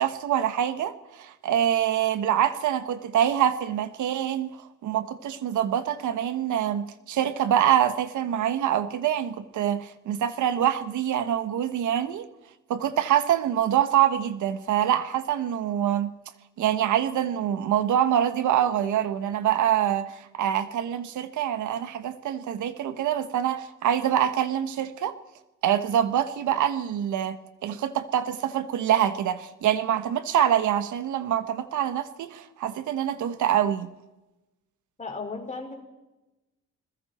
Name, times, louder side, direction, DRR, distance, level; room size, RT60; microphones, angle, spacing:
voice 1, 0.0-4.6 4.8-12.3 12.7-16.1 16.6-25.2 25.6-33.9, right 10 dB, 75° right, 1.5 m, -25 dB
voice 2, 35.0-35.8, left 3 dB, 25° left, 5.5 m, -35 dB
29.0 x 21.5 x 4.4 m
cardioid pair, 90°, 30 cm